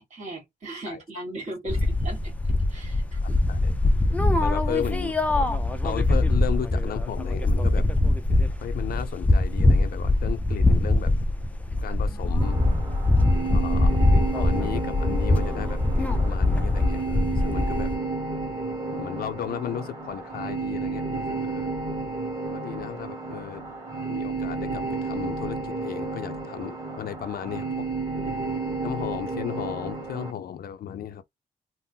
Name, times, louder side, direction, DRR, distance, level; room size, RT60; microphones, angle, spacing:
voice 1, 0.0-2.3 2.7-3.4 13.2-13.6, right 2 dB, 50° right, 1.7 m, -38 dB
sound 1, 1.7-18.0, left 2 dB, 10° left, 0.4 m, -23 dB
voice 2, 4.4-5.5 5.8-7.9 8.6-11.1 11.8-12.6 13.5-14.0 14.3-17.9 18.9-21.7 22.5-23.6 24.1-27.9 28.8-31.3, left 9 dB, 70° left, 0.5 m, -35 dB
sound 2, 12.4-30.3, right 3 dB, 20° right, 1.4 m, -32 dB
3.6 x 2.1 x 2.7 m
wide cardioid pair, 135°, 16 cm